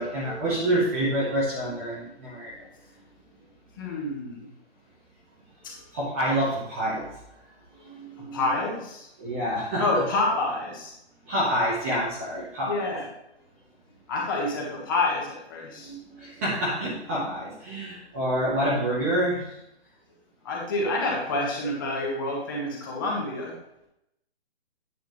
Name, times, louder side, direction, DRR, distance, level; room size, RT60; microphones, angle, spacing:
voice 1, 0.0-2.7 5.9-7.2 7.8-8.5 9.2-10.0 11.3-12.9 15.8-19.6, right 1 dB, 15° right, -7 dB, 1.0 m, -28 dB
voice 2, 3.8-4.5 5.6-5.7 8.2-9.1 9.8-10.9 12.6-13.0 14.1-15.9 20.4-23.6, left 2 dB, 20° left, -2 dB, 1.4 m, -28 dB
9.3 x 6.8 x 3.1 m, 0.81 s
hypercardioid pair, 170°, 33 cm